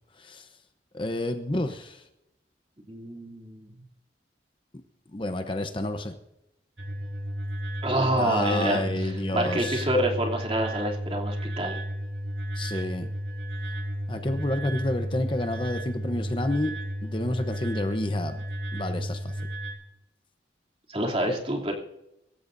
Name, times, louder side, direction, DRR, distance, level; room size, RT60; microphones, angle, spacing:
voice 1, 0.2-0.5 0.9-2.0 5.1-6.1 8.2-9.9 12.5-13.1 14.1-16.7 17.0-18.4 18.7-19.3, left 1 dB, 30° left, 7 dB, 0.8 m, -29 dB
voice 2, 2.9-3.7 7.8-11.8 20.9-21.7, right 1 dB, 30° right, 0 dB, 3.0 m, -27 dB
sound 1, 6.8-19.7, equal, 70° right, 3.6 m, -33 dB
24.5 x 13.5 x 2.7 m, 0.88 s
head